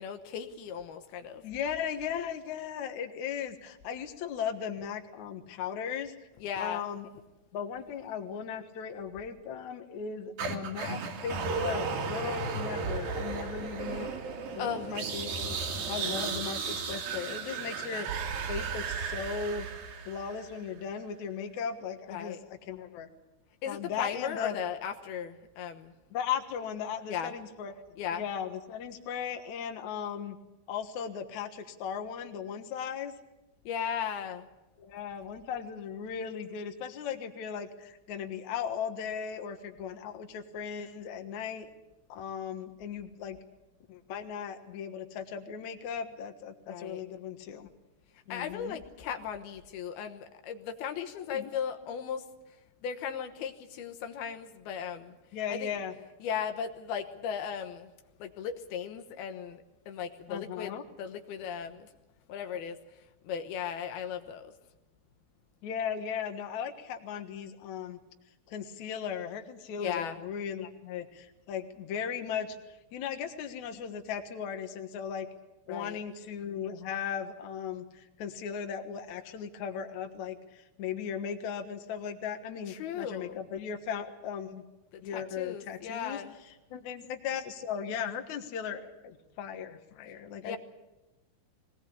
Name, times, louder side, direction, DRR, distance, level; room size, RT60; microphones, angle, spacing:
voice 1, 0.0-1.4 6.4-6.8 14.6-14.9 22.1-22.4 23.6-25.9 27.1-27.3 28.0-28.2 33.6-34.5 46.7-47.0 48.3-52.2 52.8-55.2 55.5-55.7 56.2-57.9 58.2-61.9 62.3-62.8 63.2-64.5 69.8-70.2 75.7-76.0 82.7-83.4 84.9-86.3 90.4-90.6, left 8 dB, 80° left, 7 dB, 3.1 m, -37 dB
voice 2, 1.4-6.1 6.6-7.1 7.5-14.1 14.5-15.6 15.9-19.7 20.1-23.1 23.6-24.6 26.1-27.7 28.1-30.4 30.7-33.1 34.8-41.7 42.1-43.4 43.9-47.7 48.3-48.8 51.3-51.5 55.3-55.9 60.3-60.8 65.6-68.0 68.5-75.3 75.7-84.6 85.0-86.2 86.7-90.6, left 7 dB, 60° left, 6 dB, 2.5 m, -37 dB
sound 1, 10.4-20.6, right 5 dB, 70° right, 3.8 m, -34 dB
21.5 x 18.5 x 8.4 m, 1.0 s
omnidirectional pair, 4.4 m